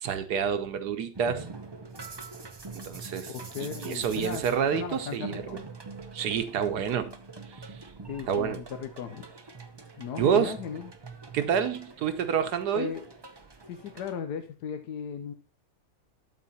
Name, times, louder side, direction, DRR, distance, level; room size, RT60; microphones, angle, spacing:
voice 1, 0.0-1.5 2.8-3.3 3.6-5.6 6.1-7.1 7.5-7.8 8.3-8.6 10.2-10.6 11.3-12.9, right 8 dB, 75° right, 1.4 m, -28 dB
sound 1, 1.1-14.1, right 3 dB, 35° right, 0.4 m, -44 dB
voice 2, 3.3-4.4 4.7-5.6 8.1-9.3 10.0-10.9 12.7-13.0 13.7-15.3, left 7 dB, 75° left, 1.3 m, -36 dB
12.5 x 4.3 x 4.1 m
omnidirectional pair, 1.7 m